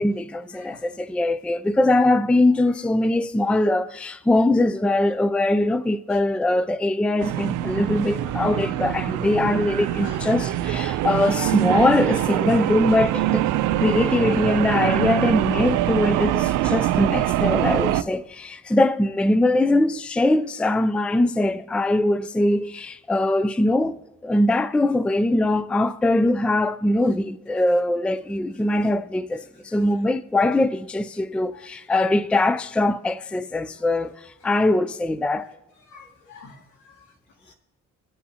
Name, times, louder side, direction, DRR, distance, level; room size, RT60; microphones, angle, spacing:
voice 1, 0.0-13.4 13.8-24.0 24.2-35.5, left 1 dB, 5° left, 0.4 m, -22 dB
voice 2, 0.6-0.9 6.1-6.2 10.0-10.4 31.5-31.7 35.9-37.1 37.4-37.5, left 3 dB, 80° left, 2.2 m, -45 dB
sound 1, 7.2-18.0, right 13 dB, 90° right, 0.5 m, -24 dB
21.0 x 8.4 x 2.8 m
cardioid pair, 90°, 30 cm